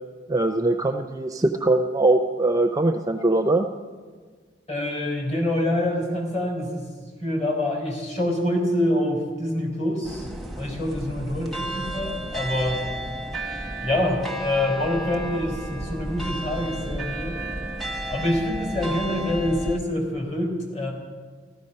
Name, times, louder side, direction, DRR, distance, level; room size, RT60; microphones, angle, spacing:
voice 1, 0.3-3.7, right 2 dB, 20° right, 7 dB, 0.5 m, -21 dB
voice 2, 4.7-6.9 7.2-10.3 10.6-12.9 13.8-17.4 18.1-20.9, left 1 dB, 35° left, -1 dB, 3.7 m, -26 dB
sound 1, 10.0-19.8, right 1 dB, ahead, 0.9 m, -32 dB
14.5 x 13.0 x 5.4 m, 1.5 s
head